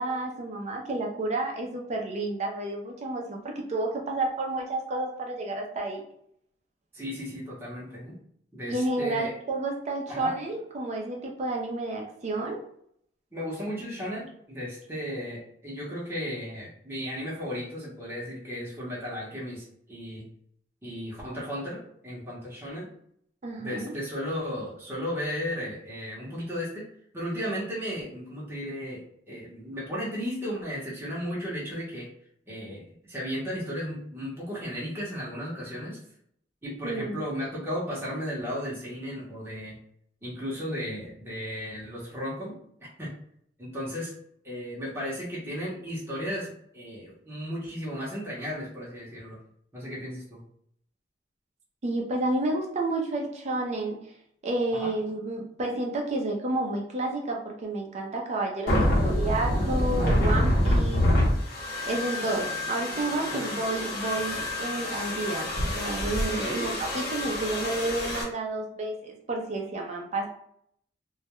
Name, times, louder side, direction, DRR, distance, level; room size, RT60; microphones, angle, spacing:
voice 1, 0.0-3.4 3.7-6.0 8.7-12.6 23.4-23.9 36.8-37.2 51.8-54.1 54.4-61.0 61.9-70.3, right 2 dB, 40° right, 0 dB, 0.5 m, -30 dB
voice 2, 6.9-8.2 8.5-9.3 10.1-10.3 13.3-20.3 20.8-22.9 23.6-26.8 27.1-32.1 32.5-36.0 36.6-39.8 40.2-42.5 42.8-43.1 43.6-44.1 44.4-49.4 49.7-50.4 54.7-54.9 63.3-63.6 66.4-66.7, equal, 15° right, -7 dB, 0.8 m, -35 dB
sound 1, 58.7-68.2, left 1 dB, 60° left, 0.8 m, -27 dB
2.2 x 2.1 x 2.8 m, 0.70 s
head